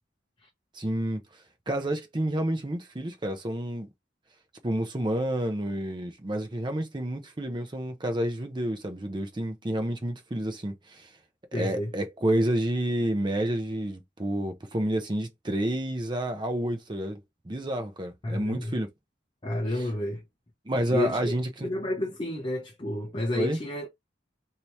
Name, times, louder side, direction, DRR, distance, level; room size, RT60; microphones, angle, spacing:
voice 1, 0.7-1.2 1.7-3.9 4.6-11.1 11.5-18.9 20.7-21.7 23.3-23.6, right 1 dB, 25° right, 0.6 m, -29 dB
voice 2, 11.5-11.9 18.2-18.8 19.4-20.2 20.9-21.2 21.6-23.9, left 2 dB, 25° left, 0.6 m, -30 dB
2.9 x 2.8 x 3.2 m
head